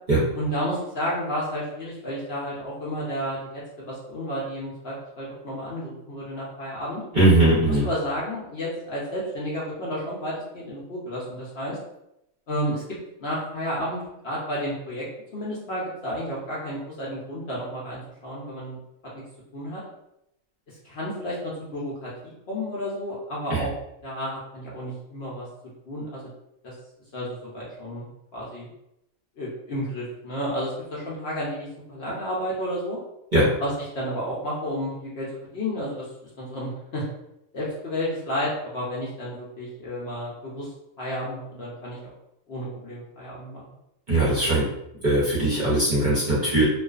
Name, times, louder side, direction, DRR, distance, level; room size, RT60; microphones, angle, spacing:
voice 1, 0.3-7.0 7.8-11.8 12.5-15.1 15.3-18.8 19.5-19.8 20.7-23.7 24.0-25.5 25.9-26.3 26.6-26.7 27.1-28.1 28.3-28.7 29.4-33.0 33.6-33.7 33.9-35.3 35.5-36.1 36.4-37.0 37.5-40.7 41.0-42.1 42.5-43.7, equal, 60° left, -6 dB, 0.7 m, -31 dB
voice 2, 7.1-7.9 23.5-23.7 33.3-33.5 44.1-44.7 45.0-46.7, right 1 dB, 45° right, -8 dB, 0.7 m, -20 dB
2.4 x 2.3 x 2.3 m, 0.83 s
omnidirectional pair, 1.4 m